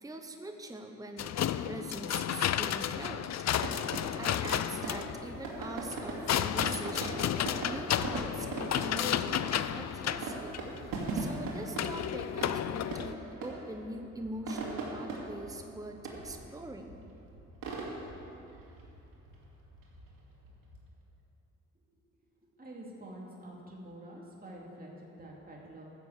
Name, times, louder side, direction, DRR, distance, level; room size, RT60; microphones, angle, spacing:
voice 1, 0.0-3.3 4.2-7.3 7.6-17.0, right 1 dB, 10° right, 4 dB, 1.0 m, -43 dB
sound 1, 1.2-13.1, left 10 dB, 55° left, 0.5 m, -32 dB
sound 2, 3.6-21.2, right 2 dB, 90° right, 2.4 m, -41 dB
voice 2, 22.4-25.9, right 1 dB, 25° right, -3 dB, 2.6 m, -47 dB
13.5 x 7.1 x 8.1 m, 2.8 s
cardioid pair, 75°, 33 cm